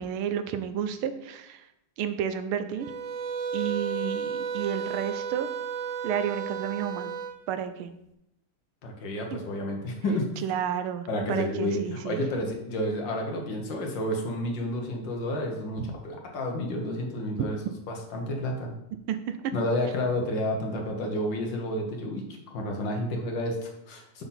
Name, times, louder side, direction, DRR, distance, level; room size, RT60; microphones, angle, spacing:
voice 1, 0.0-1.6 2.0-2.9 3.5-5.5 6.0-7.1 7.5-7.9 9.3-9.4 10.4-12.2 15.8-15.9 19.1-19.4, right 8 dB, 85° right, 10 dB, 1.5 m, -31 dB
sound 1, 2.8-7.4, right 6 dB, 70° right, 1.3 m, -33 dB
voice 2, 8.8-10.6 11.1-17.6 17.9-18.7 19.5-24.2, left 1 dB, 65° left, 1 dB, 1.8 m, -30 dB
6.8 x 4.0 x 5.7 m, 0.82 s
omnidirectional pair, 2.3 m